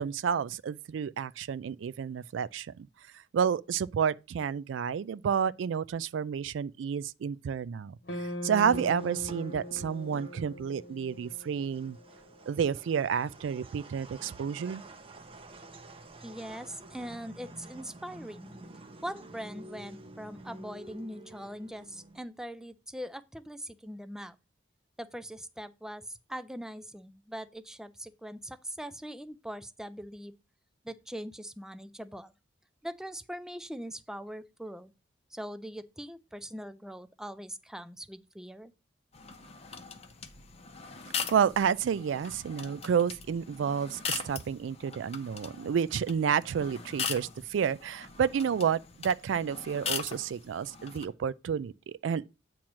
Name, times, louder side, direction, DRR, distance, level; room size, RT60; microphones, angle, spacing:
voice 1, 0.0-2.7 3.3-8.0 8.4-12.0 12.5-14.8 41.3-52.3, right 7 dB, 85° right, 0.3 m, -30 dB
sound 1, 8.1-12.4, left 1 dB, 60° left, 1.0 m, -41 dB
sound 2, 8.6-22.2, right 2 dB, 30° right, 0.7 m, -50 dB
voice 2, 16.2-18.5 19.0-24.4 25.0-30.3 30.8-32.3 32.8-34.9 35.3-38.7, equal, 5° right, 0.4 m, -41 dB
sound 3, 39.1-51.1, left 6 dB, 35° left, 0.8 m, -40 dB
8.7 x 3.0 x 6.0 m
head